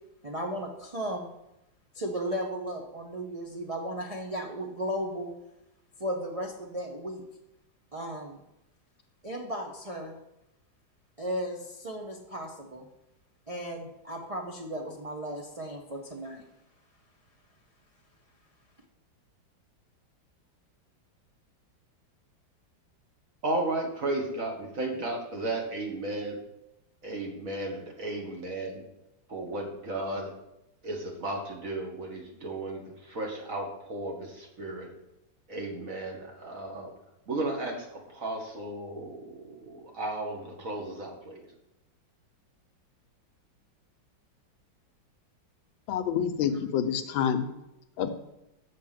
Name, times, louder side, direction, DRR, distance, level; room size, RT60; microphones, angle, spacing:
voice 1, 0.2-1.3 1.9-5.3 6.0-7.2 7.9-8.4 9.2-10.1 11.2-12.8 13.5-16.4, equal, 30° right, -1 dB, 0.6 m, -35 dB
voice 2, 23.4-26.4 27.0-28.8 29.3-30.3 30.8-32.8 33.1-34.9 35.5-36.9 37.3-41.4, right 2 dB, 45° right, 1 dB, 1.9 m, -34 dB
voice 3, 45.9-47.5 48.0-48.1, left 8 dB, 85° left, 10 dB, 1.5 m, -27 dB
6.5 x 6.2 x 7.4 m, 0.90 s
omnidirectional pair, 2.1 m